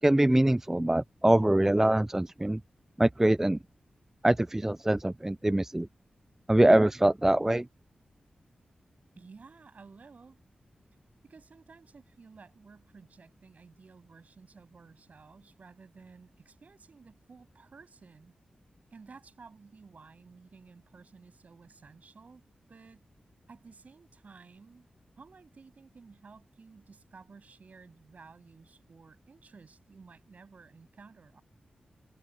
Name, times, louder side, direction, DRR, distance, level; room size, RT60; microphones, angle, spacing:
voice 1, 0.0-2.6 3.0-3.6 4.2-5.9 6.5-7.7, right 1 dB, 15° right, 0.4 m, -23 dB
voice 2, 9.1-10.4 11.2-18.3 18.9-22.4 22.7-23.1 23.5-24.9 25.2-31.4, right 4 dB, 60° right, 8.0 m, -54 dB
cardioid pair, 60°, 3 cm